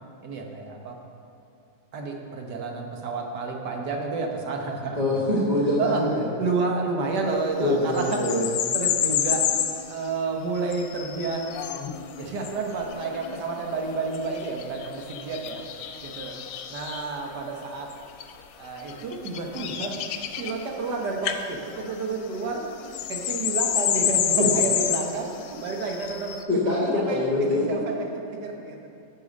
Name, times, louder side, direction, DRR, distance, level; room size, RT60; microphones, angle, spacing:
voice 1, 0.2-1.0 1.9-5.0 5.8-6.0 6.4-8.2 8.7-9.4 9.9-11.6 12.1-15.6 16.0-16.4 16.7-17.9 18.6-20.0 20.4-22.7 23.1-26.6 26.9-27.2 27.5-28.9, right 4 dB, 65° right, 1 dB, 1.5 m, -30 dB
voice 2, 5.0-6.2 7.6-8.5 24.4-24.5 26.5-27.6, left 1 dB, 25° right, -6 dB, 1.5 m, -24 dB
sound 1, 7.9-9.8 10.6-17.1 17.9-18.3 18.8-20.9 21.2-21.4 21.7-26.4, left 9 dB, 85° left, 1.3 m, -29 dB
8.4 x 6.9 x 5.1 m, 2.7 s
omnidirectional pair, 2.0 m